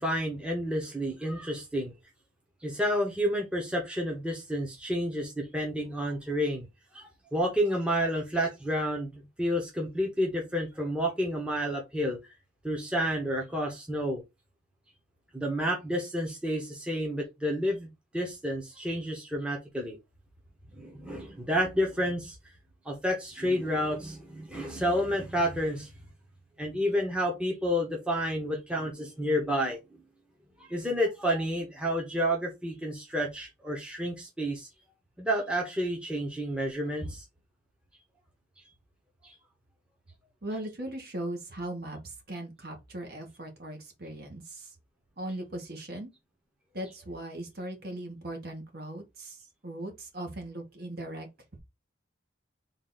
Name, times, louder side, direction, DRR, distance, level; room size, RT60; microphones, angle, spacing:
voice 1, 0.0-1.9 2.6-6.7 6.9-12.2 12.6-14.2 15.3-20.0 20.8-22.3 22.8-25.9 26.6-29.8 30.7-34.7 35.2-37.2, equal, 5° right, 0.9 m, -30 dB
voice 2, 40.4-44.8 45.2-46.1 46.7-51.3, right 1 dB, 50° right, 1.3 m, -39 dB
3.9 x 2.6 x 3.9 m
head